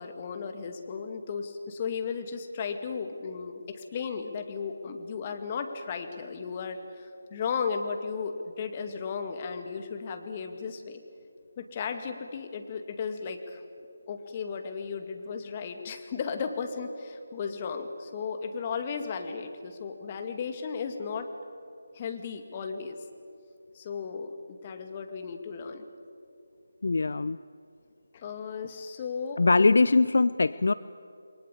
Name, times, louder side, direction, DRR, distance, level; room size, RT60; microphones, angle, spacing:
voice 1, 0.0-11.0 11.6-13.6 14.1-21.3 21.9-23.0 23.7-25.9 28.1-29.8, left 5 dB, 30° left, 6 dB, 2.4 m, -35 dB
voice 2, 26.8-27.4 29.4-30.7, left 3 dB, 60° left, 16 dB, 0.6 m, -22 dB
28.5 x 23.0 x 8.6 m, 2.6 s
figure-of-eight pair, 155°, 0 cm